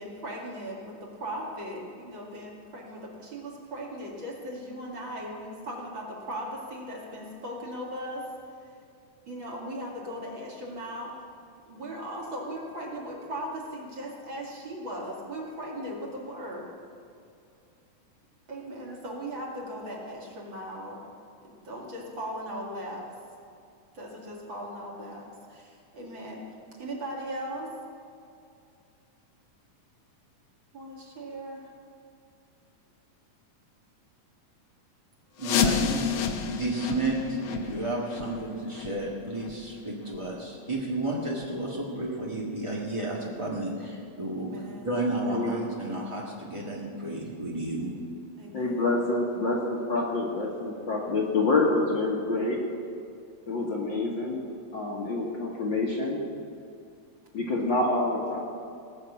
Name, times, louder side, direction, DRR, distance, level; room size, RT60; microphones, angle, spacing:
voice 1, 0.0-8.3 9.3-11.1 11.7-16.7 18.5-21.0 21.4-23.0 23.9-26.4 26.8-27.7 30.7-31.7 44.4-44.9 48.4-48.9, equal, 40° right, -2 dB, 2.7 m, -38 dB
sound 1, 35.4-41.0 41.3-41.4 42.0-42.1 42.7-42.8 43.3-43.4, left 6 dB, 75° left, 1.2 m, -31 dB
voice 2, 35.4-44.5 44.8-48.0, right 2 dB, 25° right, -4 dB, 0.6 m, -32 dB
voice 3, 48.5-52.6 53.5-54.4 54.7-56.2 57.3-58.4, left 2 dB, 50° left, -2 dB, 1.6 m, -27 dB
18.5 x 6.6 x 8.5 m, 2.5 s
omnidirectional pair, 3.4 m